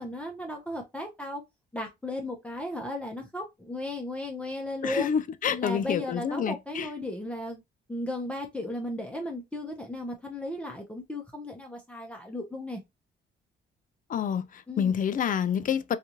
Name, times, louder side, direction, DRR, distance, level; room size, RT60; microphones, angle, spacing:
voice 1, 0.0-1.4 1.7-5.1 5.5-7.6 7.9-12.8 14.7-15.0, left 1 dB, 5° left, 0.6 m, -35 dB
voice 2, 4.8-6.9 14.1-16.0, left 8 dB, 45° left, 0.4 m, -28 dB
2.7 x 2.4 x 2.9 m
cardioid pair, 90°, 20 cm